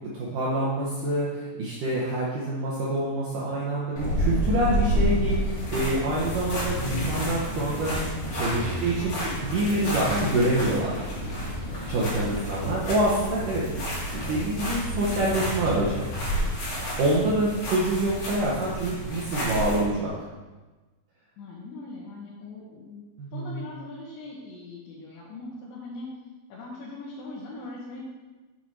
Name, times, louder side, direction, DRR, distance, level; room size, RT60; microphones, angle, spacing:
voice 1, 0.1-8.0 8.3-11.0 11.9-16.0 17.0-20.1 23.2-23.6, right 1 dB, 75° right, -5 dB, 1.9 m, -26 dB
sound 1, 4.0-19.8, equal, 45° left, 2.4 m, -30 dB
voice 2, 21.4-23.0 23.3-26.1 26.5-28.0, left 2 dB, 75° left, -7 dB, 3.4 m, -41 dB
7.5 x 6.9 x 4.6 m, 1.2 s
omnidirectional pair, 5.4 m